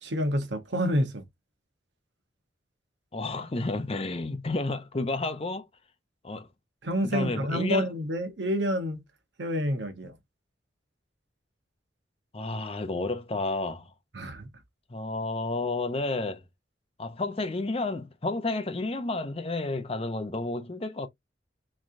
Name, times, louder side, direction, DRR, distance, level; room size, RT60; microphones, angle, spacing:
voice 1, 0.0-1.2 6.8-9.0 9.4-10.2 14.1-14.5, equal, 75° right, 1.0 m, -28 dB
voice 2, 3.1-5.7 6.2-6.5 7.0-7.9 12.3-13.9 14.9-16.4 17.0-21.1, left 2 dB, 30° left, 0.6 m, -31 dB
3.7 x 3.1 x 2.6 m
head